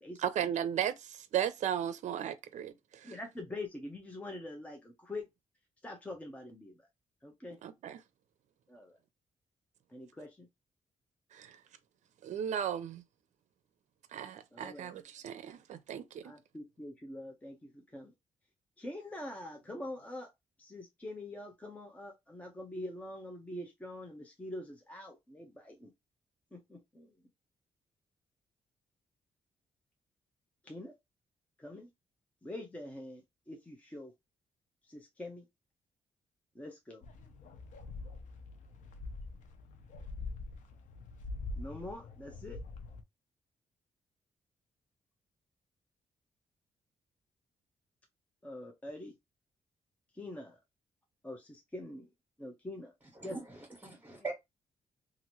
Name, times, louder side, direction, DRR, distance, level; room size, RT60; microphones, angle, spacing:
voice 1, 0.2-3.1 7.6-8.0 11.3-11.6 12.2-13.0 14.1-16.3, right 9 dB, 75° right, 0.5 m, -36 dB
voice 2, 3.0-5.2 5.8-6.8 7.2-7.6 8.7-9.0 9.9-10.5 14.5-14.9 16.2-18.1 18.8-20.3 20.6-25.9 26.5-27.1 30.6-30.9 31.6-31.9 32.4-34.1 34.9-35.4 36.5-37.0 41.6-42.6 48.4-49.1 50.1-50.6 51.2-52.1 52.4-52.9 53.2-53.4 54.1-54.2, left 1 dB, 10° left, 0.7 m, -44 dB
sound 1, 37.0-43.0, left 3 dB, 85° left, 0.6 m, -44 dB
voice 3, 53.1-54.3, right 3 dB, 15° right, 1.6 m, -42 dB
2.9 x 2.5 x 2.9 m
cardioid pair, 120°, 13 cm